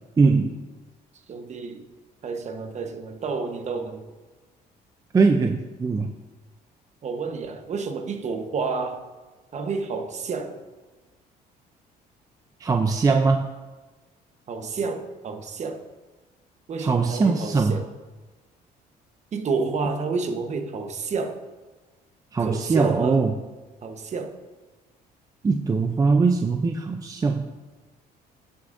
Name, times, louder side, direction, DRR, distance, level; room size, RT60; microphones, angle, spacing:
voice 1, 0.2-0.5 5.1-6.1 12.6-13.5 16.8-17.8 22.3-23.3 25.4-27.5, right 4 dB, 20° right, 5 dB, 0.5 m, -21 dB
voice 2, 1.1-1.9 2.2-4.1 7.0-9.1 9.5-10.6 14.5-15.8 16.7-17.9 19.3-21.4 22.4-23.2 23.8-24.4, right 4 dB, 45° right, 6 dB, 1.0 m, -30 dB
16.0 x 6.3 x 2.6 m, 1.2 s
cardioid pair, 110°, 17 cm